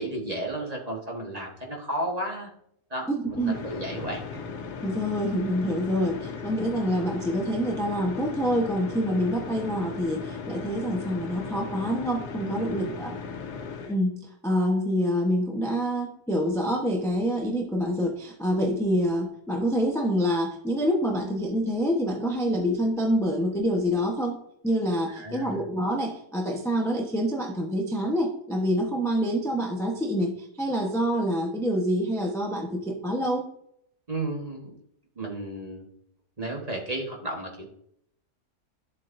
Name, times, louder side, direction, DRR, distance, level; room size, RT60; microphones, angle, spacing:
voice 1, 0.0-2.5 2.9-4.2 12.6-12.8 25.1-25.6 34.1-34.7 35.2-35.8 36.4-37.7, right 1 dB, 25° right, 0 dB, 1.4 m, -33 dB
voice 2, 3.1-3.5 4.8-13.2 13.9-33.5, equal, ahead, 0 dB, 0.8 m, -26 dB
sound 1, 3.3-14.0, left 5 dB, 85° left, 1.5 m, -37 dB
11.5 x 7.4 x 2.6 m, 0.71 s
omnidirectional pair, 1.7 m